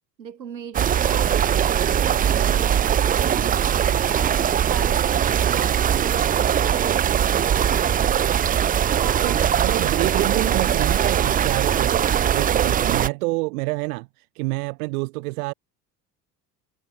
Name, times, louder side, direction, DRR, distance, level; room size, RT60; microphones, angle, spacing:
voice 1, 0.2-1.4 2.0-6.3 6.6-8.2 8.9-10.8, right 8 dB, 80° right, 5.8 m, -38 dB
sound 1, 0.7-13.1, right 9 dB, 20° right, 0.5 m, -21 dB
voice 2, 9.2-15.5, right 26 dB, 60° right, 0.7 m, -28 dB
figure-of-eight pair, 60°, 50 cm